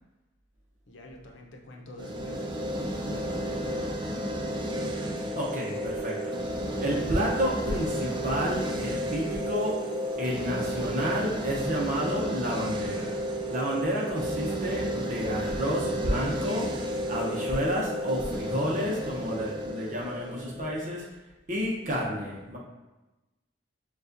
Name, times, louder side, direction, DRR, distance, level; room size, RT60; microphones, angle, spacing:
voice 1, 0.9-4.4, left 1 dB, 80° left, 0 dB, 0.7 m, -48 dB
sound 1, 2.0-21.1, equal, 25° right, 0.3 m, -32 dB
voice 2, 5.4-6.3 6.8-9.7 10.2-13.1 13.5-16.6 17.1-21.1 21.5-22.6, equal, 40° right, -3 dB, 0.7 m, -30 dB
6.7 x 2.4 x 2.6 m, 1.1 s
head